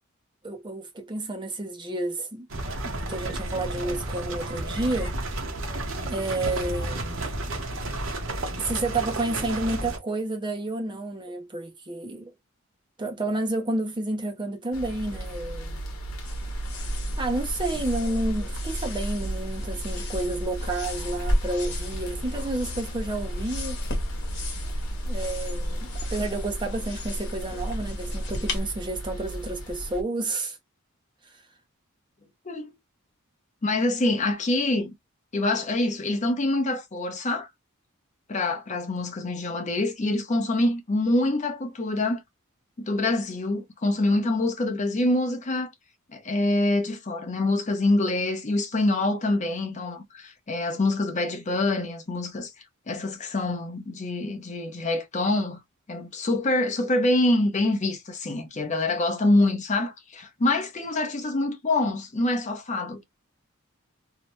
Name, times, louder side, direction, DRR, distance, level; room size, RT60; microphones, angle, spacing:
voice 1, 0.4-2.5 2.8-5.1 6.1-7.3 8.6-12.3 13.0-15.8 17.2-23.8 25.1-30.6, right 2 dB, 20° right, 0.5 m, -30 dB
sound 1, 2.5-10.0, right 2 dB, 65° right, 0.8 m, -32 dB
sound 2, 14.7-30.0, right 1 dB, 90° left, 1.0 m, -36 dB
sound 3, 16.2-28.6, equal, 55° left, 1.0 m, -32 dB
voice 2, 33.6-34.9 35.3-37.5 38.3-42.2 42.8-45.7 46.1-52.5 52.9-55.6 55.9-63.0, left 2 dB, 35° left, 0.6 m, -25 dB
2.8 x 2.1 x 3.0 m
head